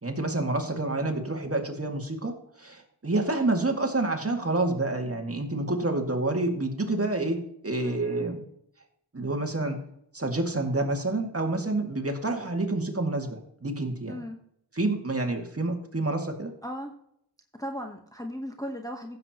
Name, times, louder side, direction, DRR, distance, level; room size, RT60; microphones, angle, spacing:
voice 1, 0.0-8.4 9.1-9.8 10.1-14.2 14.8-16.5, right 2 dB, 35° right, 3 dB, 2.0 m, -28 dB
voice 2, 7.8-8.3 14.1-14.4 16.6-16.9 17.6-19.2, equal, 10° left, 2 dB, 1.0 m, -37 dB
15.5 x 7.6 x 2.9 m, 0.71 s
wide cardioid pair, 70°, 42 cm